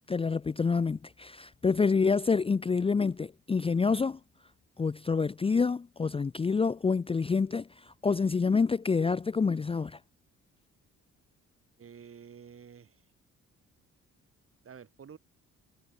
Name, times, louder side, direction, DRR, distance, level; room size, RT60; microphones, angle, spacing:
voice 1, 0.1-4.2 4.8-10.0, left 5 dB, 20° left, 0.5 m, -27 dB
voice 2, 11.8-13.0 14.6-15.2, right 7 dB, 45° right, 4.4 m, -50 dB
cardioid pair, 90°, 30 cm